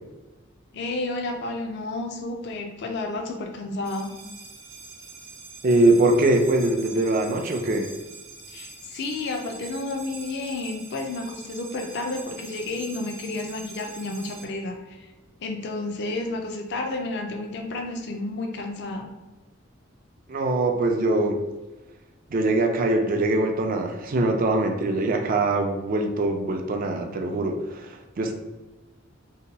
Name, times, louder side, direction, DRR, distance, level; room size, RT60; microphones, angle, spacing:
voice 1, 0.7-4.1 8.5-15.0 15.4-19.1, left 2 dB, 60° left, 2 dB, 0.4 m, -31 dB
sound 1, 3.8-14.5, right 4 dB, 90° right, 0.6 m, -44 dB
voice 2, 5.6-7.9 20.3-21.4 22.3-28.3, right 2 dB, 45° right, 4 dB, 0.4 m, -22 dB
2.8 x 2.2 x 4.0 m, 1.1 s
head